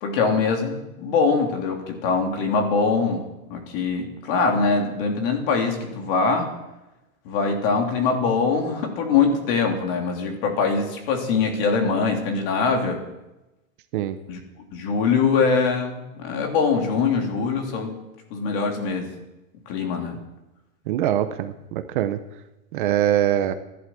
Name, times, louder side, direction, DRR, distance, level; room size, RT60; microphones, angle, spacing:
voice 1, 0.0-6.5 7.2-13.0 14.3-14.4 14.7-17.9 18.3-19.1 19.7-20.2, left 4 dB, 40° left, 2 dB, 3.2 m, -23 dB
voice 2, 20.9-22.2 22.7-23.5, right 12 dB, 40° right, 10 dB, 0.8 m, -23 dB
15.0 x 11.5 x 7.7 m, 0.98 s
supercardioid pair, 175°, 41 cm